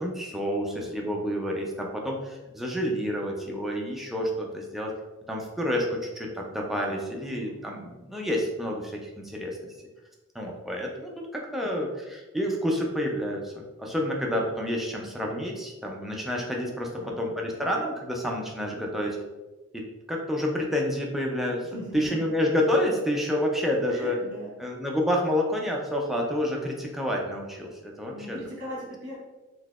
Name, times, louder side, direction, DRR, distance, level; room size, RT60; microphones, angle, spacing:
voice 1, 0.0-4.9 5.3-9.6 10.3-16.9 17.2-19.2 19.7-24.2 24.6-28.4, equal, ahead, -1 dB, 0.4 m, -29 dB
voice 2, 0.6-1.1 6.8-7.7 11.6-11.9 17.0-17.6 21.6-22.3 23.9-24.5 28.1-29.2, equal, 40° right, -6 dB, 1.4 m, -41 dB
3.9 x 2.7 x 2.4 m, 1.2 s
head